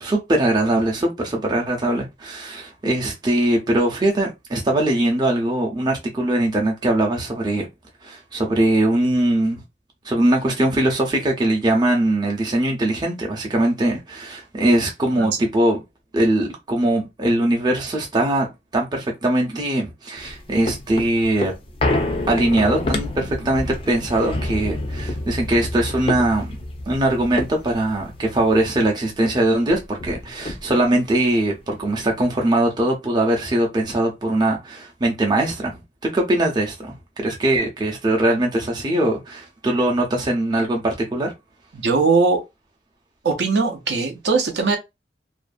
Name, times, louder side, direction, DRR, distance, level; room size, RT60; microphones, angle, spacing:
voice 1, 0.0-7.7 8.0-9.6 10.0-15.8 16.1-18.5 18.7-21.5 22.3-26.6 26.9-41.3, right 1 dB, 25° right, 0.6 m, -21 dB
sound 1, 20.2-28.9 29.2-29.3 29.6-31.0 31.5-31.6, left 2 dB, 30° left, 0.4 m, -28 dB
voice 2, 41.7-42.4 43.2-44.8, right 4 dB, 70° right, 0.5 m, -20 dB
2.5 x 2.2 x 2.4 m
head